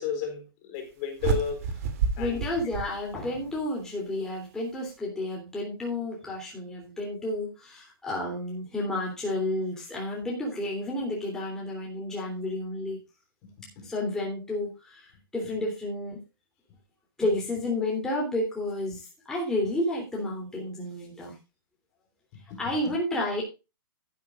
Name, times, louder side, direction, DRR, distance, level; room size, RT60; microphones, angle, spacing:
voice 1, 0.0-1.6 2.2-2.4 13.8-13.9 22.5-22.6, left 7 dB, 30° left, 4.4 m, -32 dB
sound 1, 1.2-3.6, right 6 dB, 40° right, 2.6 m, -30 dB
voice 2, 2.2-13.0 13.8-16.2 17.2-21.4 22.6-23.4, left 1 dB, 5° left, 3.2 m, -31 dB
12.5 x 11.5 x 2.5 m
hypercardioid pair, 165°, 12 cm